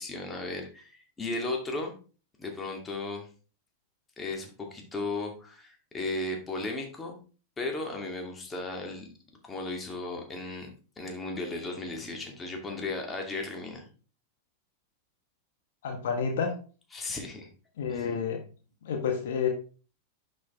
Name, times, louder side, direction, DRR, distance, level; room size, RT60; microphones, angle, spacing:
voice 1, 0.0-2.0 2.4-3.3 4.2-7.2 7.6-9.1 9.4-10.7 11.0-13.9 16.9-17.5 17.9-18.1, left 2 dB, 15° left, 2 dB, 2.4 m, -35 dB
voice 2, 15.8-16.5 17.8-18.4 18.8-19.5, left 6 dB, 55° left, 4 dB, 1.5 m, -29 dB
11.0 x 5.4 x 3.7 m, 0.37 s
figure-of-eight pair, 90°, 0 cm